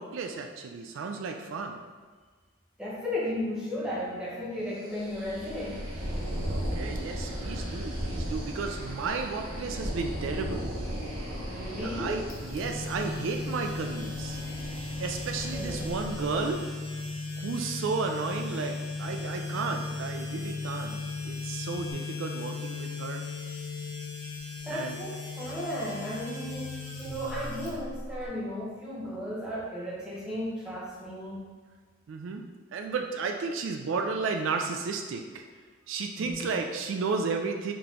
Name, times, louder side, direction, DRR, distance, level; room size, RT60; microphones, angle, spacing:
voice 1, 0.0-1.8 6.5-10.7 11.8-14.4 15.0-16.6 17.4-21.0 21.2-23.3 24.7-25.0 32.1-35.4 35.9-37.7, right 4 dB, 65° right, 4 dB, 0.3 m, -33 dB
voice 2, 2.8-5.8 11.5-12.2 15.5-15.9 24.6-31.4 36.2-36.5, left 1 dB, 5° right, -7 dB, 0.9 m, -35 dB
sound 1, 4.9-16.6, equal, 90° right, 0.9 m, -36 dB
sound 2, 10.1-21.9, equal, 40° right, 1.2 m, -47 dB
sound 3, 12.3-28.3, left 3 dB, 80° left, 0.9 m, -37 dB
3.7 x 2.9 x 3.7 m, 1.5 s
head